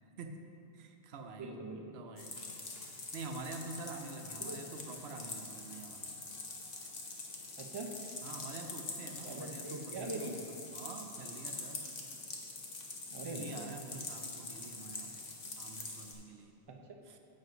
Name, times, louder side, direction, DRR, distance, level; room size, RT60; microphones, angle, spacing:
voice 1, 0.7-1.5 1.9-2.4 3.1-6.2 6.8-6.9 8.2-11.9 13.2-15.3 15.6-16.5 17.0-17.2, right 3 dB, 90° right, 5 dB, 0.9 m, -47 dB
voice 2, 1.4-2.1 4.4-4.6 7.6-7.9 9.2-10.4 13.1-14.0 16.7-17.0, right 2 dB, 30° right, 2 dB, 0.6 m, -43 dB
sound 1, 2.2-16.1, left 3 dB, 45° left, 1.0 m, -45 dB
7.6 x 5.2 x 5.2 m, 2.8 s
omnidirectional pair, 1.0 m